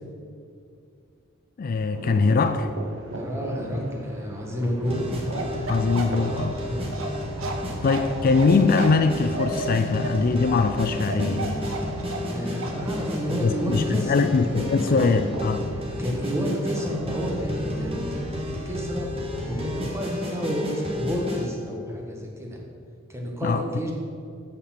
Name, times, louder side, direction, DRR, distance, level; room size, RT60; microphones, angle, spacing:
voice 1, 1.6-2.7 5.7-6.6 7.8-11.6 13.4-15.6 23.4-23.6, left 4 dB, 45° left, 9 dB, 0.4 m, -22 dB
sound 1, 1.9-16.9, right 1 dB, 65° right, 1.6 m, -39 dB
voice 2, 3.1-5.1 6.6-7.0 12.3-14.3 16.0-19.1 19.4-22.6 23.1-23.9, equal, 15° right, 0 dB, 1.5 m, -30 dB
sound 2, 4.8-21.5, left 1 dB, 30° right, 1.6 m, -32 dB
Bark, 5.3-12.3 12.6-12.8, right 3 dB, 85° right, 1.2 m, -33 dB
8.4 x 6.7 x 5.8 m, 2.4 s
head